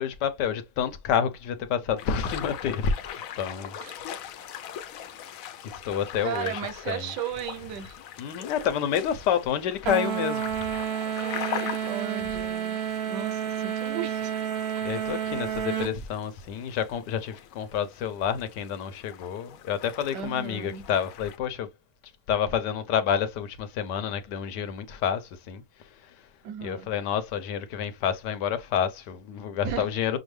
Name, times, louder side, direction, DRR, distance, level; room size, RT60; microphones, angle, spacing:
voice 1, 0.0-2.9 3.4-3.7 4.1-4.6 5.6-6.6 6.9-7.1 8.2-10.7 14.8-21.7 22.3-25.6 26.0-26.2 26.6-30.2, left 8 dB, 85° left, 1.4 m, -29 dB
sound 1, 2.0-21.4, left 9 dB, 65° left, 0.9 m, -41 dB
voice 2, 6.2-8.0 11.1-12.8 13.1-14.3 20.1-20.8 26.4-26.9 29.6-29.9, right 9 dB, 90° right, 1.4 m, -35 dB
sound 2, 9.9-15.9, right 9 dB, 55° right, 0.7 m, -30 dB
6.2 x 2.1 x 3.2 m
omnidirectional pair, 1.8 m